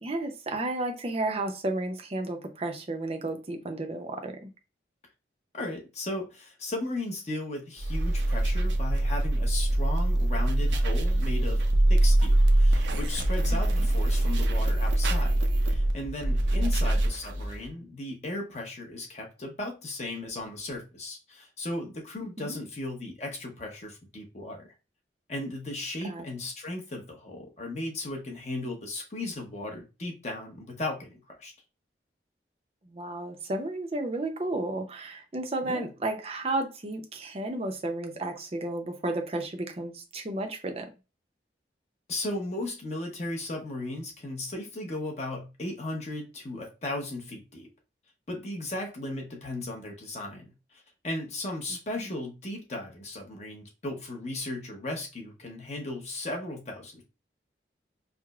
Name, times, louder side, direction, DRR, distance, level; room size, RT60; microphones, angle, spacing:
voice 1, 0.0-4.5 13.5-13.9 16.5-16.7 22.4-22.6 26.0-26.2 32.9-40.9 51.7-51.8, right 2 dB, 35° right, 0.5 m, -33 dB
voice 2, 5.5-11.6 11.9-24.6 25.3-31.5 35.6-35.9 42.1-47.7 48.3-57.0, left 2 dB, 40° left, 0.8 m, -36 dB
sound 1, 7.8-17.7, right 1 dB, 85° right, 0.5 m, -24 dB
4.7 x 2.0 x 2.3 m
head